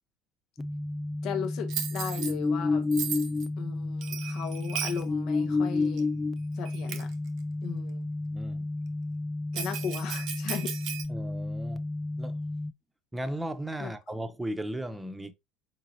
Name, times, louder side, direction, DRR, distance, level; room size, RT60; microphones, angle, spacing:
sound 1, 0.6-12.7, left 2 dB, 10° left, 0.4 m, -31 dB
voice 1, 1.2-2.9 3.6-6.1 6.5-7.1 7.6-8.1 9.5-10.7 13.8-13.9, left 8 dB, 55° left, 0.7 m, -37 dB
Bell, 1.7-2.3 2.9-3.5 4.0-5.0 6.0-6.1 6.7-7.1 9.5-11.1, right 9 dB, 55° right, 0.6 m, -36 dB
voice 2, 8.3-8.7 11.1-11.9 12.2-12.4 13.1-15.3, right 1 dB, 10° right, 0.7 m, -36 dB
4.9 x 3.8 x 2.8 m
figure-of-eight pair, 65°, 0 cm